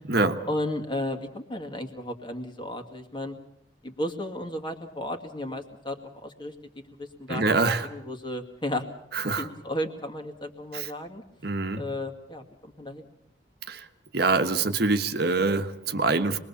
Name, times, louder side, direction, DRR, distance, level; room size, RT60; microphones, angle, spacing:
voice 1, 0.5-3.4 3.8-6.5 7.0-7.6 7.8-8.9 9.4-11.2 11.7-13.1, left 1 dB, 25° left, 5 dB, 2.2 m, -34 dB
voice 2, 7.3-7.9 9.1-9.5 10.7-10.9 11.4-11.8 13.7-13.9 14.1-16.4, right 3 dB, 55° right, 7 dB, 1.4 m, -25 dB
26.5 x 21.0 x 7.2 m, 0.73 s
head